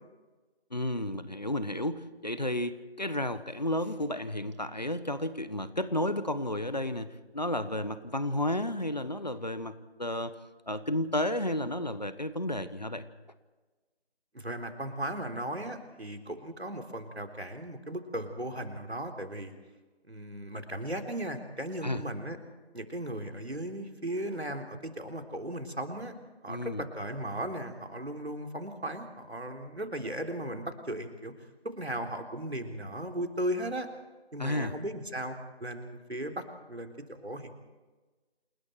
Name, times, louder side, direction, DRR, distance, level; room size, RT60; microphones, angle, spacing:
voice 1, 0.7-10.3 10.7-13.1 21.8-22.0 26.5-26.9 34.4-34.7, left 1 dB, 40° left, 13 dB, 1.2 m, -32 dB
voice 2, 14.3-19.5 20.1-22.4 22.7-26.1 26.4-31.3 31.6-33.9 34.3-37.5, right 1 dB, 75° right, 4 dB, 3.8 m, -36 dB
28.5 x 20.5 x 4.6 m, 1.2 s
figure-of-eight pair, 170°, 32 cm